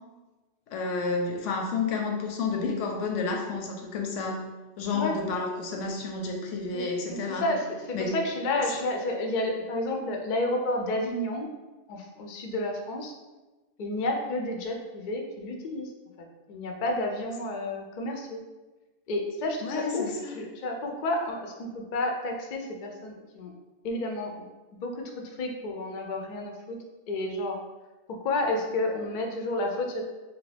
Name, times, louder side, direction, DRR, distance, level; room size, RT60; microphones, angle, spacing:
voice 1, 0.7-4.4 4.8-7.5 7.9-8.3 8.7-8.8 19.6-20.4, left 4 dB, 85° left, 2 dB, 0.9 m, -30 dB
voice 2, 6.7-11.5 11.9-13.1 13.8-15.9 16.2-18.4 19.1-23.5 23.8-24.3 24.8-25.0 25.4-26.8 27.1-27.6 28.2-30.0, left 2 dB, 60° left, 2 dB, 0.4 m, -31 dB
2.9 x 2.5 x 3.2 m, 1.2 s
omnidirectional pair, 1.3 m